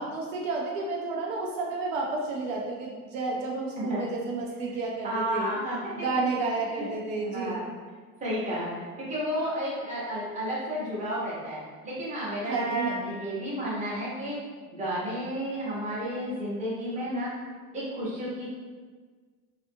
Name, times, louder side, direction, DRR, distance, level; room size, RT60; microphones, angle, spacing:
voice 1, 0.0-5.5 6.0-7.6 12.5-13.2, right 3 dB, 60° right, -2 dB, 0.6 m, -31 dB
voice 2, 5.0-5.8 6.1-6.3 6.8-6.9 7.3-7.6 8.2-14.4 14.7-17.3 17.7-18.5, equal, 15° right, -7 dB, 0.7 m, -32 dB
2.4 x 2.4 x 2.6 m, 1.4 s
supercardioid pair, 125°, 47 cm